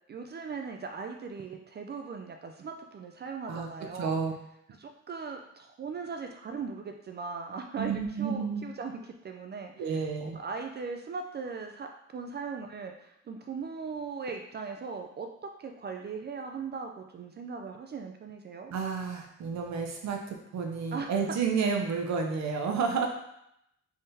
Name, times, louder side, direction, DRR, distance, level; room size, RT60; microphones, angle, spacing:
voice 1, 0.1-4.2 4.8-9.9 10.2-18.7 20.9-21.1, right 5 dB, 35° right, 4 dB, 0.4 m, -39 dB
voice 2, 4.0-4.3 7.8-8.6 9.8-10.4 18.7-23.1, right 5 dB, 65° right, 2 dB, 0.7 m, -30 dB
3.6 x 3.4 x 2.7 m, 0.77 s
cardioid pair, 90°, 30 cm